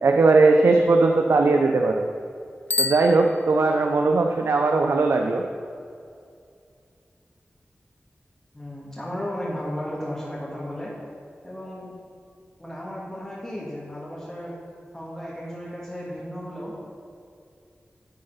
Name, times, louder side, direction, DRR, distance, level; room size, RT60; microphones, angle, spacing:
voice 1, 0.0-2.1 2.8-5.4, right 3 dB, 85° right, 3 dB, 0.4 m, -19 dB
Bicycle bell, 2.6-4.0, left 3 dB, 45° left, 0.3 m, -29 dB
voice 2, 8.5-10.9 11.4-11.9 12.6-14.6 14.9-16.7, equal, 15° left, -7 dB, 1.9 m, -34 dB
10.0 x 4.0 x 5.5 m, 2.4 s
cardioid pair, 45°, 4 cm